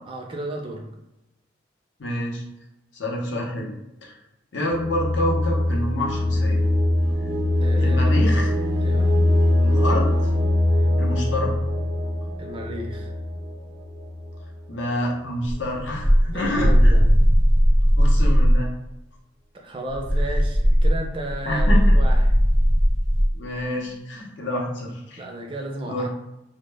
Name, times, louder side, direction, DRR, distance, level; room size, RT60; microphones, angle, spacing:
voice 1, 0.1-0.9 7.6-8.1 8.8-9.2 10.7-11.0 12.4-13.1 16.2-17.2 19.5-22.3 25.2-26.1, right 1 dB, 30° right, 2 dB, 0.3 m, -33 dB
voice 2, 2.0-2.4 2.9-3.7 4.0-4.2 4.5-6.6 7.8-8.5 9.6-10.1 11.0-11.5 14.7-16.9 18.0-18.7 21.5-22.0 23.3-25.2 25.9-26.1, left 1 dB, 75° left, -1 dB, 0.6 m, -27 dB
sound 1, 4.7-14.5, left 1 dB, 85° right, 0.5 m, -22 dB
sound 2, 15.5-18.7 19.9-23.4, equal, 45° left, 0.9 m, -17 dB
2.1 x 2.0 x 3.2 m, 0.90 s
head